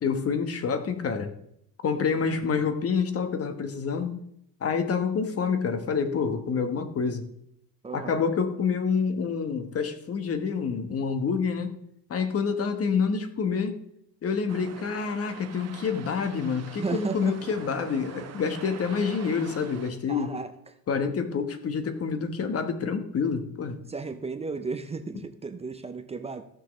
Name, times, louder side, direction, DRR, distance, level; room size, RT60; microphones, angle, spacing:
voice 1, 0.0-1.3 1.8-4.2 4.6-7.3 7.9-11.8 12.1-13.8 14.2-20.3 20.9-23.8, left 5 dB, 30° left, 8 dB, 1.2 m, -27 dB
voice 2, 7.8-8.2 16.8-17.4 20.1-20.7 23.9-26.4, right 4 dB, 15° right, 9 dB, 0.5 m, -34 dB
sound 1, 14.5-19.9, right 8 dB, 35° right, 1.1 m, -44 dB
15.0 x 6.4 x 3.1 m, 0.74 s
supercardioid pair, 110°, 45 cm